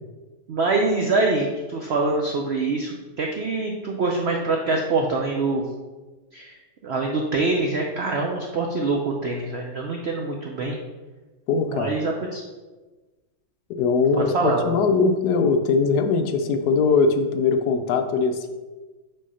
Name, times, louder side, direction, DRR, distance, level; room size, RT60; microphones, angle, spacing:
voice 1, 0.5-5.6 6.3-6.6 6.8-10.8 11.7-12.4 14.3-14.7, right 3 dB, 75° right, 1 dB, 0.6 m, -24 dB
voice 2, 11.5-12.0 13.8-18.5, left 4 dB, 75° left, 7 dB, 1.1 m, -21 dB
5.4 x 3.5 x 5.4 m, 1.2 s
omnidirectional pair, 1.9 m